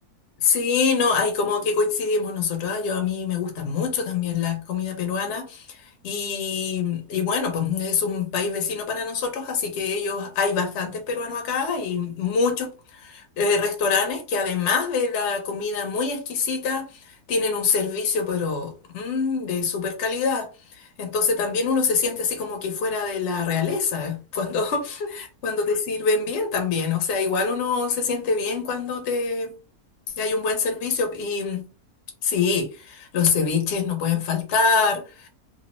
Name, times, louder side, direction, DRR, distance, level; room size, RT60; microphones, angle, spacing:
voice 1, 0.4-5.6 6.0-12.7 13.0-20.5 20.7-29.5 30.2-31.6 32.2-35.3, left 5 dB, 55° left, 0.8 m, -25 dB
2.6 x 2.0 x 2.9 m
omnidirectional pair, 1.6 m